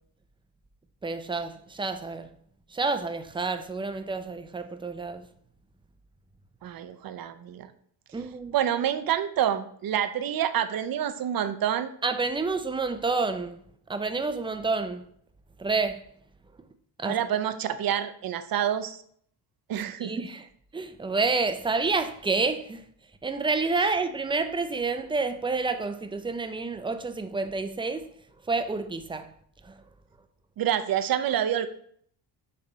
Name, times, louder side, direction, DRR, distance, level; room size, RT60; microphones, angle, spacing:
voice 1, 1.0-2.3 2.7-5.3 8.1-8.5 12.0-13.6 13.9-15.0 15.6-16.0 17.0-17.2 20.0-20.5 20.7-22.8 23.2-28.1 28.5-29.3 29.6-29.8, right 3 dB, 10° right, 0.5 m, -29 dB
voice 2, 6.6-7.7 8.5-11.9 17.0-19.0 19.7-20.1 30.6-31.7, right 10 dB, 55° right, 0.7 m, -27 dB
6.8 x 3.4 x 5.0 m
cardioid pair, 125°, 42 cm